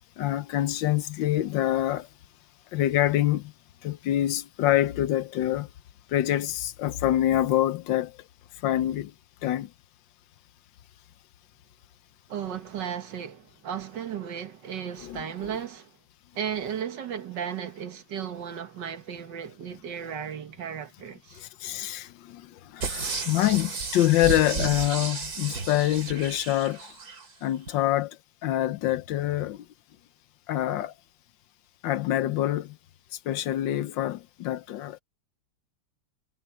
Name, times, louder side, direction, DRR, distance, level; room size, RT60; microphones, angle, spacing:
voice 1, 0.2-2.1 2.7-3.5 3.8-5.7 6.1-8.2 8.6-9.1 9.4-9.7 15.0-15.2 21.4-26.8 27.4-28.2 28.4-29.7 30.5-30.9 31.8-32.8 33.2-35.0, left 13 dB, 90° left, 1.5 m, -26 dB
voice 2, 12.3-16.0 16.3-21.4, right 8 dB, 75° right, 2.0 m, -35 dB
sound 1, 22.8-27.2 27.7-27.8, right 4 dB, 55° right, 3.0 m, -33 dB
omnidirectional pair, 1.9 m